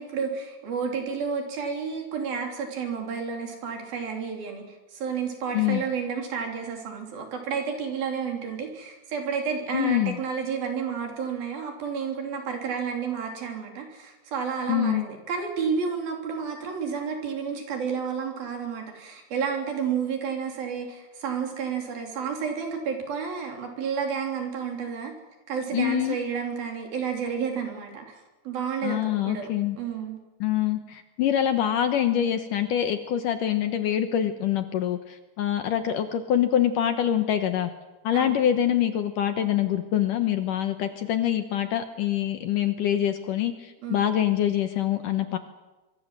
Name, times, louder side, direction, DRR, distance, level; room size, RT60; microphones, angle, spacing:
voice 1, 0.0-4.6 4.9-25.1 25.5-28.2 28.5-29.5 29.8-30.2 38.1-38.4 43.8-44.1, right 6 dB, 65° right, 2 dB, 5.3 m, -31 dB
voice 2, 9.7-10.2 14.7-15.0 25.7-26.2 28.8-29.8 30.4-37.7 38.0-45.4, left 10 dB, 70° left, 8 dB, 2.3 m, -25 dB
25.0 x 23.5 x 7.6 m, 1.1 s
omnidirectional pair, 4.7 m